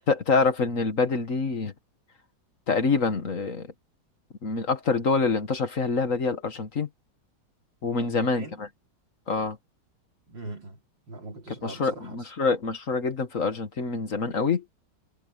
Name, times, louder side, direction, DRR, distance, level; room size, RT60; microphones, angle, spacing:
voice 1, 0.1-1.7 2.7-3.7 4.4-6.9 7.8-8.7 9.3-9.6 11.6-14.6, left 4 dB, 40° left, 1.8 m, -26 dB
voice 2, 8.0-8.6 10.3-10.8 11.1-12.3, right 2 dB, 65° right, 4.3 m, -41 dB
omnidirectional pair, 2.2 m